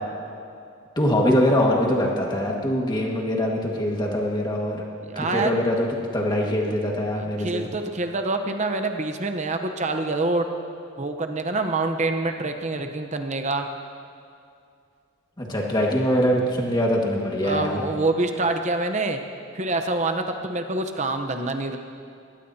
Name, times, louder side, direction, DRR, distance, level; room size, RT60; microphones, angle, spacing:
voice 1, 1.0-4.8 5.2-7.7 15.4-17.8, equal, 20° left, -2 dB, 1.8 m, -23 dB
voice 2, 5.0-5.6 7.2-10.5 11.0-13.7 17.4-19.2 19.5-21.8, right 2 dB, 35° right, 6 dB, 0.9 m, -26 dB
21.0 x 18.5 x 2.9 m, 2.4 s
head